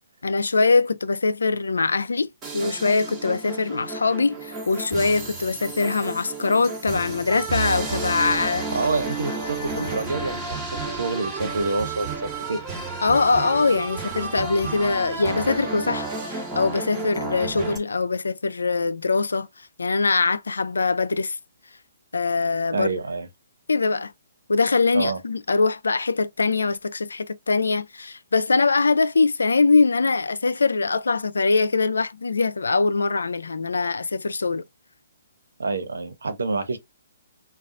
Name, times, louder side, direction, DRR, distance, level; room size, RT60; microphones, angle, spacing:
voice 1, 0.2-2.3 2.5-8.6 13.0-19.5 19.8-21.4 22.1-22.9 23.7-24.1 24.5-34.6, left 4 dB, 80° left, 0.4 m, -22 dB
sound 1, 2.4-17.8, right 4 dB, 20° right, 1.2 m, -32 dB
voice 2, 8.7-12.6 22.7-23.3 24.9-25.2 35.6-36.8, right 3 dB, 80° right, 0.8 m, -27 dB
4.0 x 2.3 x 2.5 m
hypercardioid pair, 135°, 0 cm